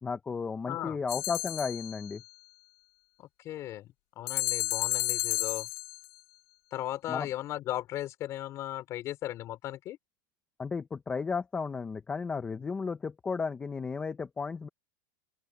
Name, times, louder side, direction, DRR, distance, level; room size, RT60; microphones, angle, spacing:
voice 1, 0.0-2.2 7.1-7.3 10.6-14.7, left 5 dB, 10° left, 0.8 m, -34 dB
voice 2, 0.7-1.0 3.2-5.7 6.7-10.0, left 14 dB, 30° left, 4.3 m, -37 dB
sound 1, 1.1-2.1 4.3-6.1, left 31 dB, 45° left, 5.8 m, -32 dB
open air
supercardioid pair, 170°, 11 cm